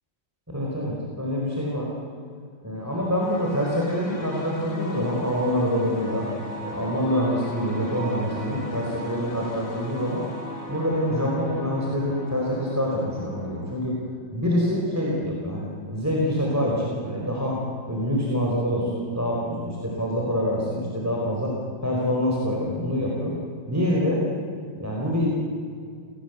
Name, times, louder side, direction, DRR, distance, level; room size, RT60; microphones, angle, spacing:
voice 1, 0.5-1.9 2.6-6.3 6.6-10.2 10.7-14.0 14.3-15.6 15.9-17.6 17.9-21.5 21.8-23.3 23.7-24.2 24.7-25.3, equal, 10° right, -3 dB, 4.4 m, -26 dB
sound 1, 2.8-13.8, left 1 dB, 40° left, 3.4 m, -38 dB
28.5 x 18.5 x 8.2 m, 2.2 s
omnidirectional pair, 2.0 m